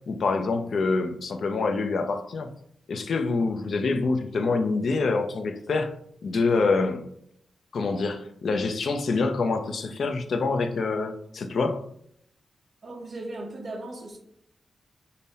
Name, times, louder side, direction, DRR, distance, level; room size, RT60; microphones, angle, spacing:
voice 1, 0.1-2.5 2.9-5.9 6.2-7.0 7.7-11.9, left 3 dB, 55° left, 0.4 m, -26 dB
voice 2, 12.8-14.2, right 2 dB, 35° right, 0.8 m, -37 dB
5.4 x 2.1 x 4.1 m
wide cardioid pair, 175°, 0 cm